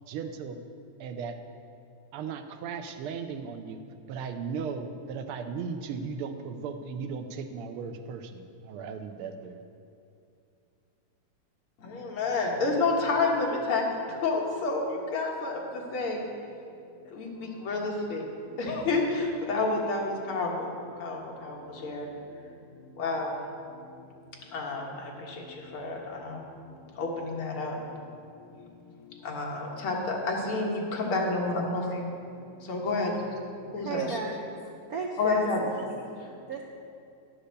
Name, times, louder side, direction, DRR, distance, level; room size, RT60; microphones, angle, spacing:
voice 1, 0.1-0.6 1.0-1.4 2.1-3.8 4.1-9.6, right 5 dB, 90° right, 8 dB, 1.6 m, -36 dB
voice 2, 11.8-16.2 17.1-24.2 24.5-28.0 28.4-28.7 29.0-33.2 33.5-34.2 35.2-35.6 35.9-36.0, left 3 dB, 80° left, -1 dB, 2.5 m, -30 dB
voice 3, 33.8-34.6 34.9-35.9 36.5-36.6, right 4 dB, 65° right, 1 dB, 0.9 m, -34 dB
11.5 x 7.0 x 6.7 m, 2.5 s
omnidirectional pair, 2.3 m